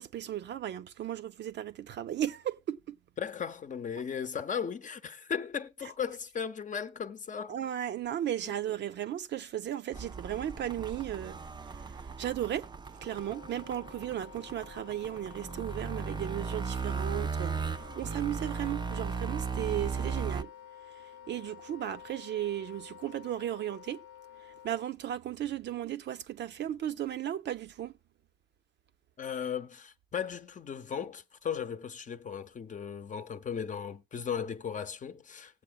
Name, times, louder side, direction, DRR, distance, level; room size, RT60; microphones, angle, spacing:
voice 1, 0.0-3.0 7.5-11.4 12.2-12.7 13.0-20.5 21.3-24.0 24.6-27.9, right 11 dB, 65° right, 0.6 m, -35 dB
voice 2, 3.2-7.6 8.4-8.5 29.2-35.6, left 7 dB, 40° left, 0.8 m, -36 dB
sound 1, 9.9-20.4, right 5 dB, 20° right, 0.5 m, -37 dB
Wind instrument woodwind instrument, 12.9-24.9, left 9 dB, 85° left, 0.8 m, -51 dB
19.5 x 7.7 x 2.3 m
cardioid pair, 90°, 20 cm